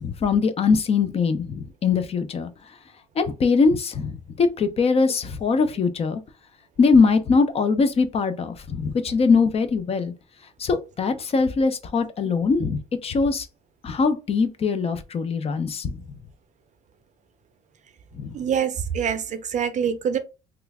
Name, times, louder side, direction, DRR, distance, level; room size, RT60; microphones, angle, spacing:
voice 1, 0.0-2.5 3.2-6.2 6.8-10.1 10.6-13.5 13.8-16.0 18.2-18.3, left 4 dB, 35° left, 0.6 m, -22 dB
voice 2, 18.3-20.2, right 8 dB, 45° right, 0.5 m, -25 dB
3.0 x 2.4 x 3.4 m
cardioid pair, 110°, 17 cm